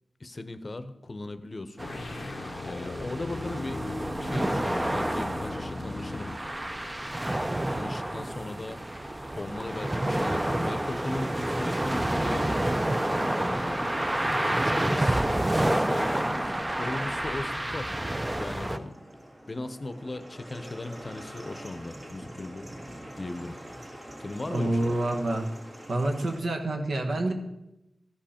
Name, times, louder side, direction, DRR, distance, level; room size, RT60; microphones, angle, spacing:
voice 1, 0.2-1.9 2.6-3.9 4.2-6.4 7.7-8.8 9.4-12.5 13.4-14.2 14.6-15.3 15.6-18.0 18.4-19.0 19.5-22.7 23.2-23.6 24.2-25.0, left 2 dB, 40° left, 11 dB, 0.7 m, -38 dB
sound 1, 1.8-6.5, left 3 dB, 90° left, 0.5 m, -38 dB
sound 2, 1.8-18.8, right 1 dB, 15° right, 0.4 m, -29 dB
sound 3, 8.8-26.4, equal, 40° right, 2.0 m, -45 dB
voice 2, 24.5-25.5 25.9-27.3, right 1 dB, 85° right, 3 dB, 1.2 m, -27 dB
14.0 x 5.3 x 4.3 m, 0.93 s
wide cardioid pair, 80°, 0 cm